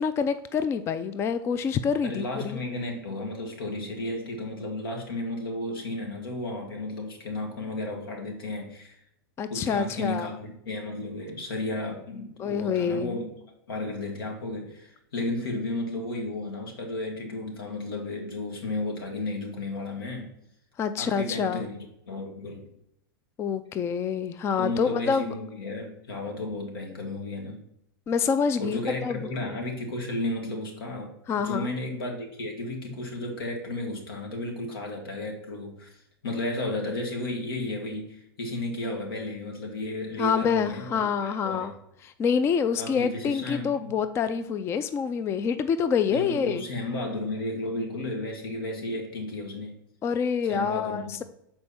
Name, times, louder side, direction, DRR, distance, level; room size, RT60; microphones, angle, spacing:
voice 1, 0.0-2.6 9.4-10.3 12.4-13.2 20.8-21.6 23.4-25.2 28.1-29.3 31.3-31.7 40.2-41.7 42.0-46.6 50.0-51.2, left 6 dB, 20° left, 11 dB, 0.3 m, -27 dB
voice 2, 2.0-9.0 9.5-13.3 13.7-20.3 21.0-21.7 22.1-22.7 24.6-27.6 28.6-41.7 42.8-43.9 46.1-49.8 50.5-51.1, left 2 dB, 85° left, 1 dB, 2.0 m, -33 dB
7.1 x 4.4 x 4.3 m, 0.78 s
hypercardioid pair, 125°, 12 cm